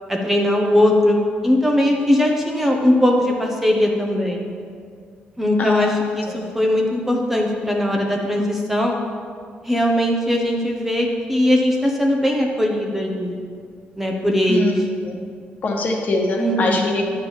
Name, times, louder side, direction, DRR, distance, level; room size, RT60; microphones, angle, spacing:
voice 1, 0.1-1.2 1.4-4.5 5.4-9.0 9.6-13.4 14.0-14.8 16.4-16.9, left 1 dB, 5° right, 0 dB, 1.0 m, -19 dB
voice 2, 5.6-5.9 6.3-6.4 14.5-14.7 15.0-15.2 15.6-17.0, left 2 dB, 45° left, -1 dB, 1.4 m, -23 dB
10.0 x 3.7 x 7.3 m, 2.1 s
cardioid pair, 110°, 4 cm